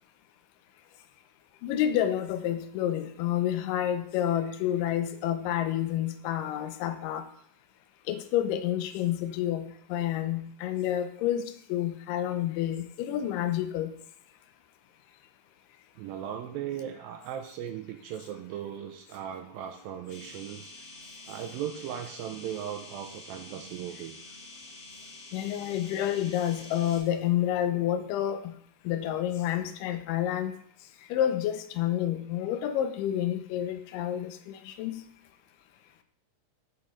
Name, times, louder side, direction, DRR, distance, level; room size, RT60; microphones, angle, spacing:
voice 1, 1.6-7.3 8.1-13.9 25.3-28.5 28.8-30.5 31.1-35.0, left 11 dB, 80° left, 8 dB, 2.1 m, -29 dB
voice 2, 16.0-20.7 21.3-24.2, right 10 dB, 85° right, 5 dB, 2.2 m, -38 dB
sound 1, 20.1-27.0, left 2 dB, 55° left, 2.1 m, -47 dB
8.4 x 4.9 x 3.0 m, 0.63 s
omnidirectional pair, 4.2 m